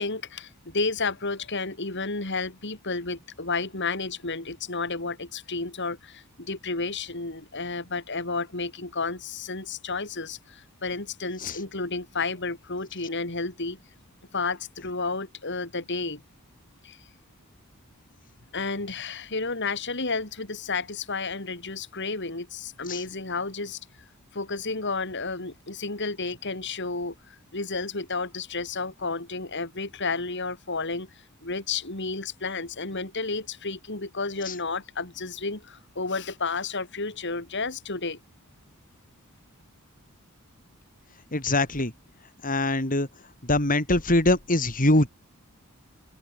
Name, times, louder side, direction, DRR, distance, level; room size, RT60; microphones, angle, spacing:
voice 1, 0.0-13.8 14.3-16.2 16.8-17.0 18.5-23.8 24.3-31.1 31.4-38.2, left 3 dB, 55° left, 3.8 m, -31 dB
voice 2, 41.3-41.9 42.4-43.1 43.4-45.1, left 2 dB, 40° left, 3.7 m, -23 dB
open air
head